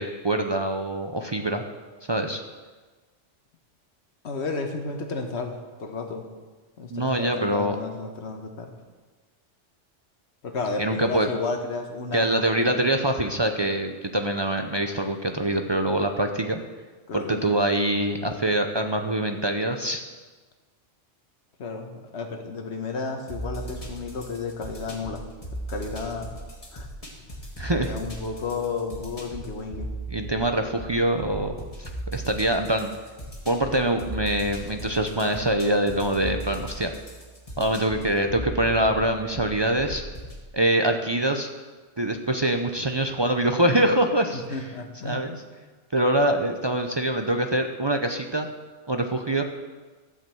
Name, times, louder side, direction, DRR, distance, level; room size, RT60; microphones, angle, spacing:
voice 1, 0.0-1.6 2.1-2.4 6.9-7.8 10.8-11.3 12.1-16.6 17.1-20.0 27.6-27.9 30.1-31.5 31.8-32.9 33.5-36.9 37.6-40.0 40.5-41.5 42.0-44.6 45.0-45.4 45.9-48.5 48.9-49.4, right 1 dB, 35° right, 5 dB, 0.4 m, -24 dB
voice 2, 4.2-6.2 6.8-8.7 10.4-12.4 17.1-17.5 21.6-25.2 25.7-26.3 26.7-26.9 27.7-29.9 44.5-45.2, left 4 dB, 65° left, 4 dB, 1.5 m, -32 dB
sound 1, 23.3-40.4, right 1 dB, 30° left, 1.7 m, -38 dB
12.0 x 5.3 x 7.7 m, 1.3 s
omnidirectional pair, 1.2 m